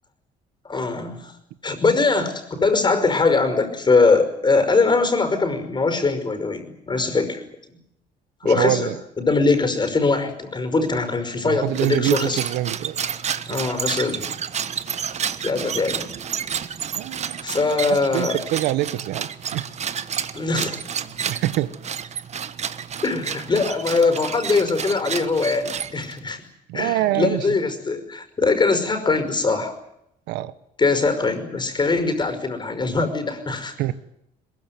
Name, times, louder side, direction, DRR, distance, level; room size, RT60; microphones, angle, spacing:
voice 1, 0.6-1.3 1.6-7.4 7.7-7.8 8.4-12.4 13.5-14.3 15.4-16.1 17.4-18.4 20.3-20.8 23.0-26.4 26.7-29.7 30.8-33.7, left 3 dB, 25° left, 9 dB, 5.4 m, -22 dB
voice 2, 8.4-8.9 11.4-13.0 13.5-13.6 16.9-17.4 17.9-19.6 21.3-21.7 26.7-27.6 30.3-30.5 33.8-33.9, right 15 dB, 90° right, 15 dB, 1.3 m, -25 dB
sound 1, 11.7-26.3, right 7 dB, 40° right, 1.4 m, -30 dB
22.0 x 22.0 x 9.5 m, 0.79 s
cardioid pair, 110°, 17 cm